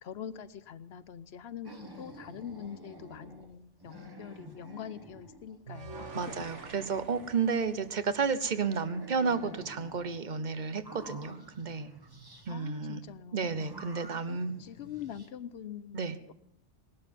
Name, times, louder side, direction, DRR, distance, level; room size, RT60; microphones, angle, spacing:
voice 1, 0.0-6.5 12.5-13.7 14.3-16.3, left 9 dB, 65° left, 15 dB, 1.0 m, -44 dB
sound 1, 1.6-3.5 3.8-5.5 5.9-7.9 8.4-10.2 10.7-12.5 13.5-15.3, right 1 dB, 20° right, 1.3 m, -50 dB
sound 2, 5.7-8.9, right 4 dB, 80° right, 1.7 m, -47 dB
voice 2, 6.1-11.9 12.5-13.0 13.3-14.5 15.9-16.2, right 5 dB, 45° right, 13 dB, 0.9 m, -32 dB
19.5 x 12.5 x 5.3 m, 0.78 s
omnidirectional pair, 1.2 m